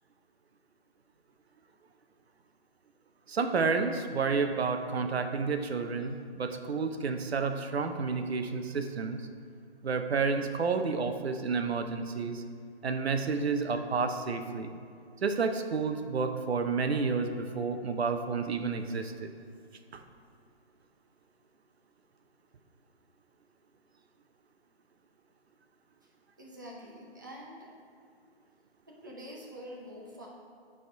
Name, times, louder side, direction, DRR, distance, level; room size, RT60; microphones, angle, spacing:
voice 1, 3.3-9.2 9.8-12.4 12.8-14.7 15.2-19.3 19.9-20.0, right 4 dB, 70° right, 7 dB, 0.7 m, -30 dB
voice 2, 26.4-27.7 28.9-30.3, equal, 20° right, -3 dB, 0.6 m, -46 dB
9.2 x 3.6 x 4.5 m, 2.3 s
hypercardioid pair, 165°, 33 cm